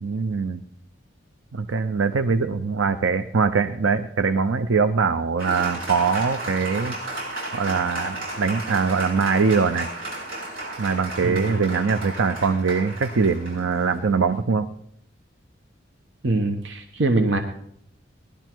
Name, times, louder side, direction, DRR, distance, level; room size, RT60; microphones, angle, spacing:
voice 1, 0.0-0.6 1.5-6.9 7.5-9.9 10.8-14.7, right 5 dB, 85° right, 9 dB, 0.6 m, -22 dB
Applause, 5.4-14.4, right 2 dB, 50° right, 7.9 m, -33 dB
voice 2, 16.2-17.4, right 2 dB, 65° right, 5 dB, 1.0 m, -23 dB
18.5 x 12.0 x 4.6 m, 0.69 s
head